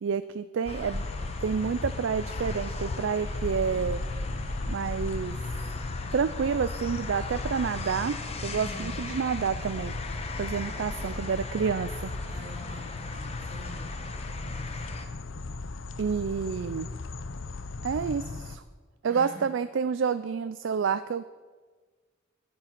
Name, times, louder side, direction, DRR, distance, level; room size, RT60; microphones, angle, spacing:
voice 1, 0.0-1.1 1.4-4.0 4.6-5.4 6.1-8.2 8.4-9.9 10.4-12.1 16.0-16.9 17.8-18.6 19.0-21.2, right 6 dB, 70° right, 13 dB, 0.4 m, -29 dB
sound 1, 0.7-15.1, left 2 dB, 30° left, 1.1 m, -38 dB
sound 2, 0.9-18.6, left 3 dB, 85° left, 0.7 m, -37 dB
voice 2, 8.5-9.1 12.3-13.9 14.4-15.0 19.1-19.5, left 1 dB, 45° right, -4 dB, 3.0 m, -45 dB
11.5 x 10.0 x 5.9 m, 1.4 s
head